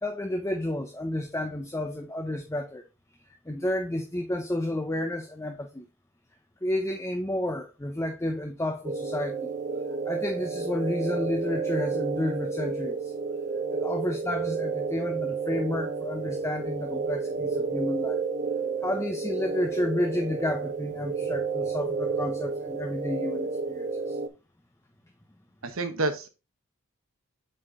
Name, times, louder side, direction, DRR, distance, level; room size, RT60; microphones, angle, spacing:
voice 1, 0.0-2.8 3.5-5.9 6.6-9.5 10.1-13.1 13.8-18.2 18.8-24.2, left 1 dB, 15° left, 0.6 m, -31 dB
sound 1, 8.8-24.3, right 4 dB, 35° right, 0.5 m, -31 dB
voice 2, 25.6-26.3, right 2 dB, 75° right, 1.0 m, -28 dB
7.5 x 4.3 x 3.7 m
head